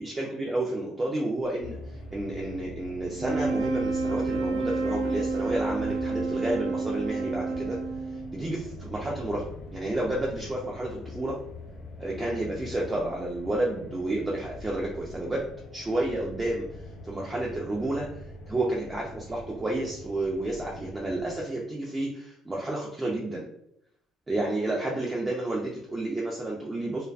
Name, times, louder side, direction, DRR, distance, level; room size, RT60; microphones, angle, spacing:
voice 1, 0.0-7.8 8.3-11.4 12.0-15.5 15.7-23.5 24.3-27.1, right 1 dB, 15° right, -3 dB, 0.3 m, -31 dB
sound 1, 1.6-21.4, left 2 dB, 50° left, 0.4 m, -43 dB
sound 2, 3.1-8.6, right 3 dB, 85° right, 0.5 m, -30 dB
2.5 x 2.2 x 2.3 m, 0.75 s
cardioid pair, 155°, 0 cm